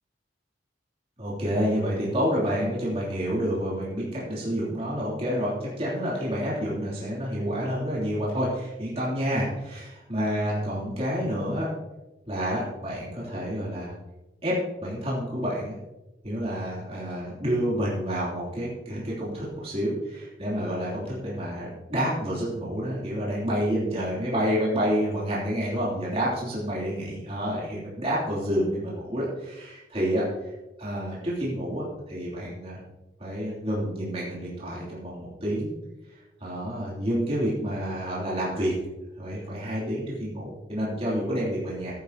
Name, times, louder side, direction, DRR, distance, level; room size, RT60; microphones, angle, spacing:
voice 1, 1.2-11.7 12.3-13.9 14.4-15.8 16.2-30.5 30.8-32.8 33.2-35.7 36.4-38.8 39.2-41.9, equal, 35° right, -6 dB, 3.2 m, -29 dB
14.5 x 11.0 x 2.9 m, 1.0 s
head